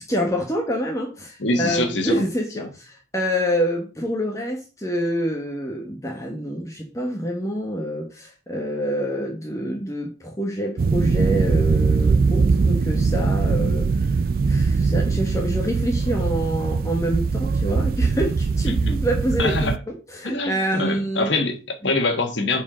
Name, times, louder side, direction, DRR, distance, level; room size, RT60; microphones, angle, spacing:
voice 1, 0.1-14.2 14.5-21.3, equal, 15° left, 1.2 m, -27 dB
voice 2, 1.4-2.2 2.6-2.7 18.7-19.0 19.4-19.8 20.2-22.6, left 2 dB, 75° left, 1.5 m, -24 dB
sound 1, 10.8-19.8, right 4 dB, 50° right, 0.3 m, -21 dB
7.1 x 4.6 x 5.0 m
head